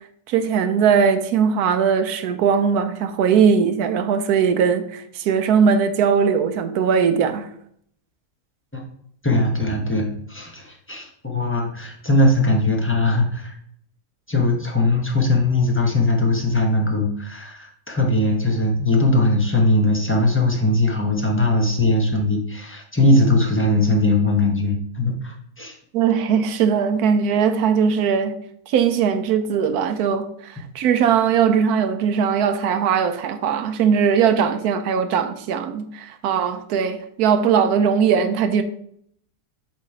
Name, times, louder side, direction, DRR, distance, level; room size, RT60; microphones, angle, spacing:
voice 1, 0.3-7.5 25.9-28.4 28.7-38.6, right 7 dB, 75° right, 1.1 m, -19 dB
voice 2, 9.2-13.6 14.3-25.8, left 2 dB, 10° left, 0.8 m, -20 dB
7.4 x 3.1 x 4.8 m
omnidirectional pair, 1.8 m